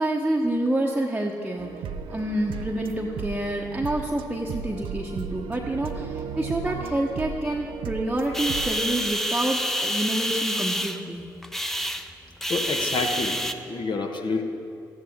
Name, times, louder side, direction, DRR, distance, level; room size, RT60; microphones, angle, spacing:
voice 1, 0.0-1.8 2.1-11.2, right 1 dB, 10° right, -2 dB, 1.1 m, -28 dB
sound 1, 1.6-9.1, right 6 dB, 65° right, 0.6 m, -35 dB
sound 2, 8.3-13.5, equal, 5° left, 0.8 m, -28 dB
voice 2, 12.5-14.4, left 3 dB, 55° left, 3 dB, 1.4 m, -28 dB
14.0 x 12.0 x 3.7 m, 2.6 s
hypercardioid pair, 45°, 10 cm